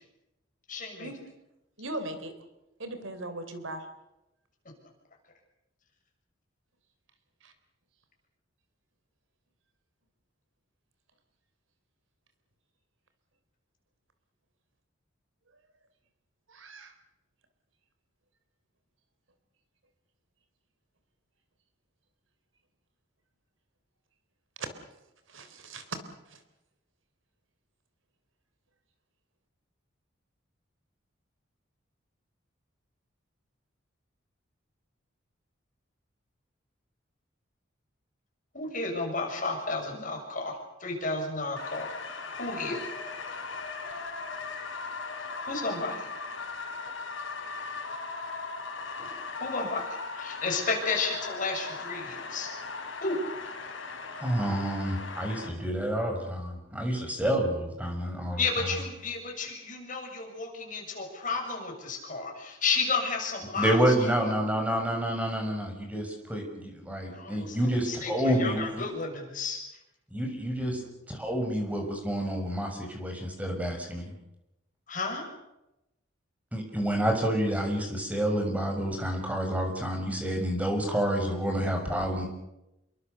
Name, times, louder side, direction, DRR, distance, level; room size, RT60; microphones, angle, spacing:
voice 1, 0.7-1.1 38.5-41.9 42.4-42.8 45.5-46.1 49.4-52.5 53.0-53.2 58.4-64.3 67.1-69.6 74.9-75.3, left 4 dB, 40° left, 2 dB, 6.7 m, -32 dB
voice 2, 1.8-2.3 2.8-3.9 7.4-7.5 16.5-17.0 24.6-24.7 25.3-25.9 26.3-26.4, right 2 dB, 80° right, 9 dB, 3.7 m, -39 dB
sound 1, 41.6-55.5, left 4 dB, 70° left, 5.0 m, -38 dB
voice 3, 54.2-58.7 63.6-68.8 70.1-70.8 71.1-74.1 76.5-82.3, right 1 dB, 10° right, 2 dB, 6.1 m, -29 dB
28.0 x 23.0 x 6.8 m, 0.92 s
head